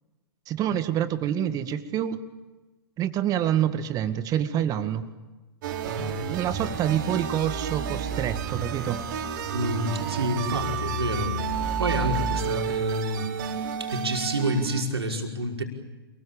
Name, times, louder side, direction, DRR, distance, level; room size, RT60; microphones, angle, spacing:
voice 1, 0.5-2.2 3.0-5.0 6.3-9.0, right 10 dB, 30° right, 10 dB, 2.1 m, -27 dB
sound 1, 5.6-14.8, right 6 dB, 50° right, 5.0 m, -30 dB
voice 2, 5.8-6.4 9.5-11.5 11.8-13.3 13.9-15.6, right 1 dB, 80° right, 2 dB, 5.5 m, -28 dB
29.0 x 22.0 x 8.9 m, 1.2 s
figure-of-eight pair, 115°, 13 cm